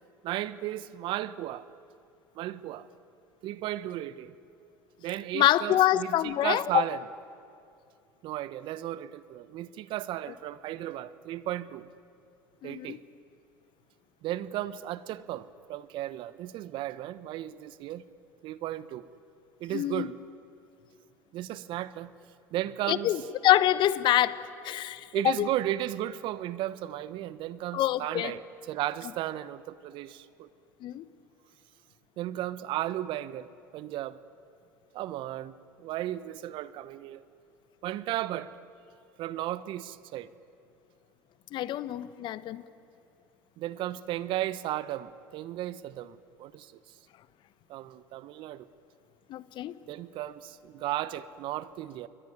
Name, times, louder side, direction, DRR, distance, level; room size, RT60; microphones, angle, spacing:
voice 1, 0.2-1.7 2.3-2.9 3.4-4.3 5.0-7.0 8.2-11.9 12.6-13.0 14.2-18.1 18.4-19.1 19.6-20.1 21.3-22.1 22.5-23.1 25.1-28.4 28.7-30.5 32.2-34.2 34.9-35.5 35.8-37.2 37.8-38.5 39.2-40.3 43.6-46.7 47.7-48.7 49.9-52.1, right 14 dB, 60° right, 1.1 m, -35 dB
voice 2, 5.3-6.8 12.6-13.0 19.7-20.1 22.9-25.5 27.7-28.3 30.8-31.1 41.5-42.6 49.3-49.7, left 13 dB, 55° left, 1.1 m, -26 dB
28.5 x 22.0 x 9.5 m
hypercardioid pair, 80°, 10 cm